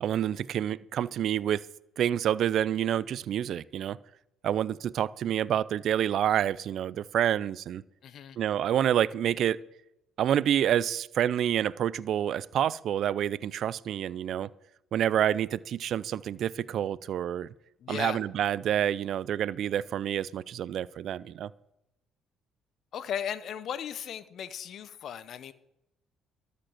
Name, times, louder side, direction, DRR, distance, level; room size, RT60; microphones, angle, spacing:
voice 1, 0.0-1.6 2.0-4.0 4.4-7.8 8.4-9.6 10.2-14.5 14.9-17.5 17.9-21.5, right 10 dB, 60° right, 0.4 m, -28 dB
voice 2, 8.0-8.4 17.8-18.2 22.9-25.5, left 9 dB, 60° left, 0.7 m, -36 dB
13.0 x 5.2 x 7.8 m
supercardioid pair, 80°, 0 cm